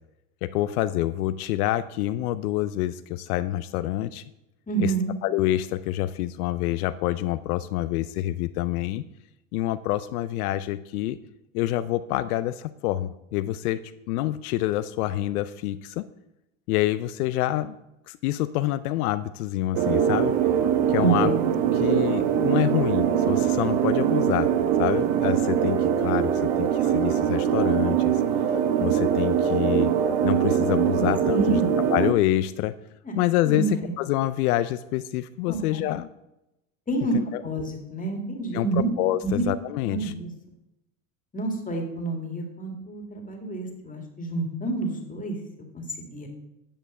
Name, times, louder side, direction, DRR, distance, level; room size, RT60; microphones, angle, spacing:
voice 1, 0.4-4.2 4.8-4.9 5.2-9.0 9.5-11.2 11.5-16.1 16.7-17.8 18.1-20.3 20.9-21.3 21.8-28.2 28.8-29.9 30.2-31.6 31.9-32.7 33.1-36.1 37.1-37.4 38.5-40.1, left 14 dB, 85° left, 13 dB, 0.5 m, -27 dB
voice 2, 4.7-5.1 21.0-21.4 31.0-31.7 33.0-33.2 33.4-33.9 35.5-35.9 36.9-37.1 37.4-38.9 39.2-39.5 39.8-40.3 41.3-45.4 45.7-46.3, right 3 dB, 20° left, 2 dB, 2.0 m, -28 dB
sound 1, 19.7-32.1, right 9 dB, 60° right, 0.8 m, -23 dB
8.9 x 5.4 x 5.3 m, 0.89 s
supercardioid pair, 100°, 43 cm